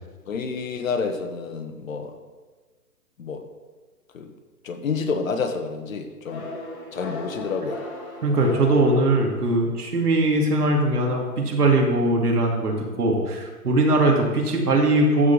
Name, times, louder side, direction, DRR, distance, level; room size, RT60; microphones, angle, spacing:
voice 1, 0.3-2.1 3.2-3.4 4.1-4.3 4.6-6.5 6.9-7.8, left 5 dB, 60° left, 7 dB, 1.5 m, -29 dB
sound 1, 6.2-9.8, left 2 dB, 45° left, 2.9 m, -37 dB
voice 2, 8.2-15.3, right 2 dB, 75° right, 1 dB, 2.6 m, -20 dB
14.0 x 5.0 x 5.6 m, 1.4 s
hypercardioid pair, 140°, 46 cm